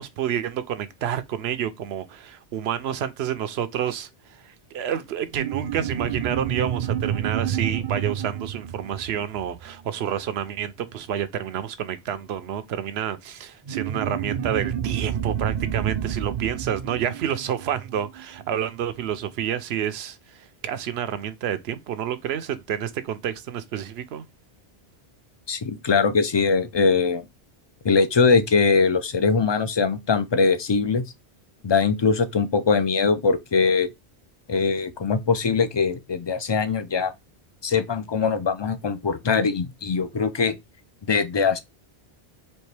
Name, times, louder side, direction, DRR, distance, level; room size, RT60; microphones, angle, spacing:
voice 1, 0.0-24.3, right 9 dB, 85° right, 0.8 m, -29 dB
sound 1, 5.3-10.3 13.7-18.6, right 9 dB, 55° right, 0.5 m, -29 dB
voice 2, 25.5-27.2 27.8-31.0 31.6-33.9 34.5-37.1 37.6-40.6 41.1-41.6, left 5 dB, 45° left, 0.3 m, -21 dB
4.4 x 2.9 x 3.2 m
omnidirectional pair, 1.1 m